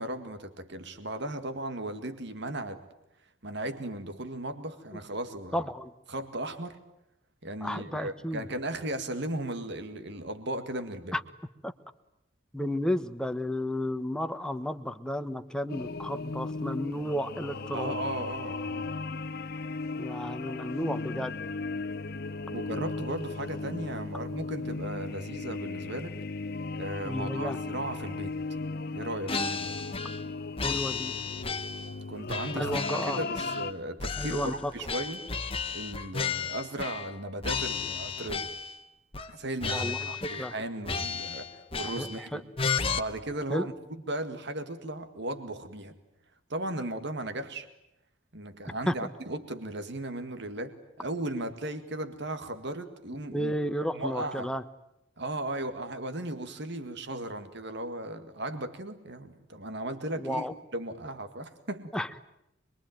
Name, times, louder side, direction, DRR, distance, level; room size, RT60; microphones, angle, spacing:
voice 1, 0.0-2.8 3.4-5.7 6.1-6.8 7.4-11.2 17.7-18.9 22.5-26.2 26.7-28.3 28.9-29.7 32.1-32.8 33.1-35.3 35.7-38.5 39.3-42.4 42.9-45.9 46.5-47.7 48.3-53.5 53.9-54.5 55.2-60.5 60.7-61.9, right 1 dB, 60° right, 9 dB, 2.0 m, -36 dB
voice 2, 5.5-5.9 7.6-8.4 11.1-11.2 11.6-11.7 12.5-18.0 20.0-21.4 27.0-27.6 30.6-31.1 32.6-33.2 34.2-34.7 39.7-40.5 42.0-42.4 43.5-43.7 48.9-49.1 53.3-54.6 60.2-60.5 61.9-62.2, equal, 5° left, 8 dB, 1.2 m, -32 dB
sound 1, 15.7-33.7, left 3 dB, 55° left, 1.0 m, -36 dB
sound 2, 29.3-30.3 30.6-31.9 32.3-33.7 34.0-37.2 37.4-38.8 39.1-39.3 39.6-40.6 40.8-42.2 42.6-43.0, left 5 dB, 30° left, 1.2 m, -33 dB
26.0 x 23.0 x 9.1 m, 0.85 s
head